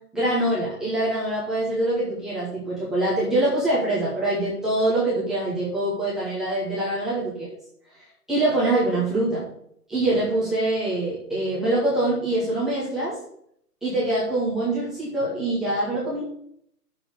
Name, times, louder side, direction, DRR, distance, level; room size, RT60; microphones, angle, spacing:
voice 1, 0.1-7.5 8.3-9.4 9.9-13.2 13.8-16.3, right 1 dB, ahead, -10 dB, 0.9 m, -24 dB
7.4 x 6.8 x 8.1 m, 0.68 s
hypercardioid pair, 165°, 48 cm